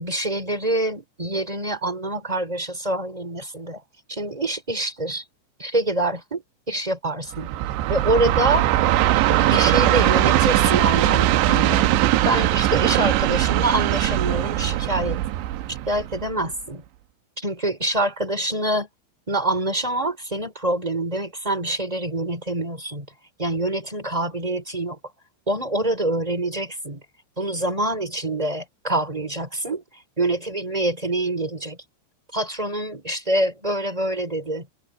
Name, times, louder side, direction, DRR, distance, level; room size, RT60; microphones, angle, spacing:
voice 1, 0.0-3.8 4.1-5.2 5.6-7.5 7.9-8.7 9.3-11.9 12.2-15.2 15.7-16.8 17.4-18.9 19.3-23.1 23.4-25.0 25.5-27.0 27.4-29.8 30.2-31.8 32.3-34.7, right 1 dB, 10° right, 3.2 m, -25 dB
Train, 7.3-16.5, right 14 dB, 75° right, 2.9 m, -20 dB
omnidirectional pair, 5.8 m